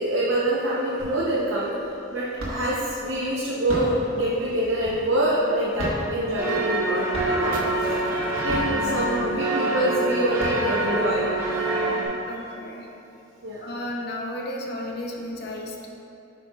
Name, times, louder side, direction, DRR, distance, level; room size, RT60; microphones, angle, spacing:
voice 1, 0.0-7.9 8.4-11.3 13.4-13.7, right 1 dB, 70° right, -7 dB, 0.8 m, -25 dB
sound 1, 1.0-1.5 1.8-2.9 3.5-5.3 5.7-6.8 7.1-7.7 8.3-9.3 9.8-9.9 10.2-11.1, right 1 dB, 90° right, 1.4 m, -33 dB
sound 2, 6.4-12.1, right 2 dB, 15° right, 0.9 m, -26 dB
sound 3, 7.5-10.2, right 2 dB, 40° right, 0.5 m, -41 dB
voice 2, 12.3-12.9 13.6-15.9, left 1 dB, 50° left, 0 dB, 0.7 m, -33 dB
8.0 x 5.6 x 2.4 m, 2.8 s
head